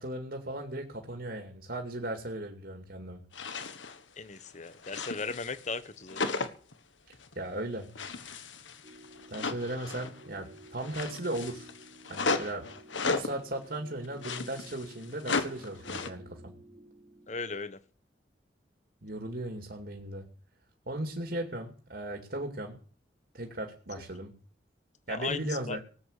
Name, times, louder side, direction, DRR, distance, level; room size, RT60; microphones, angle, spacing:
voice 1, 0.0-3.2 7.4-7.9 9.3-11.7 12.1-12.6 13.0-16.5 19.0-20.2 20.9-22.8 23.3-24.3 25.1-25.9, right 1 dB, 55° right, 4 dB, 2.4 m, -37 dB
sound 1, 3.3-4.0 4.3-5.8 6.1-6.7 7.1-7.3 8.0-10.3 10.6-13.4 14.0-16.1, left 4 dB, 85° left, 1.4 m, -35 dB
voice 2, 4.2-6.2 17.3-17.8 25.1-25.4 25.7-25.8, left 4 dB, 40° left, 14 dB, 1.0 m, -36 dB
sound 2, 8.8-17.5, right 1 dB, 40° right, 2.2 m, -54 dB
18.5 x 8.8 x 6.7 m, 0.43 s
head